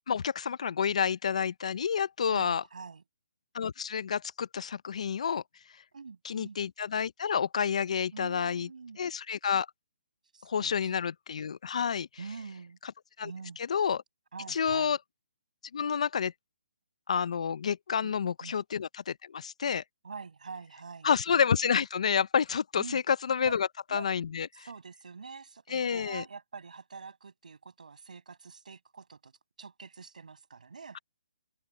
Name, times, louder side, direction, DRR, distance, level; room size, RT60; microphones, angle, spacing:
voice 1, 0.1-2.6 3.5-5.4 6.2-8.7 9.0-9.7 10.4-12.1 12.8-12.9 13.2-13.3 13.6-14.0 14.5-15.0 15.7-16.3 17.1-19.8 21.0-24.7 25.7-26.2, left 7 dB, 55° left, 0.6 m, -29 dB
voice 2, 2.3-3.0 5.9-6.6 8.1-9.0 10.3-11.0 12.2-12.8 13.2-13.6 14.3-14.9 18.0-18.6 20.0-21.1 22.8-23.0 23.4-23.5 23.9-24.1 24.5-29.3 29.6-31.0, right 5 dB, 75° right, 6.0 m, -45 dB
hypercardioid pair, 165°, 4 cm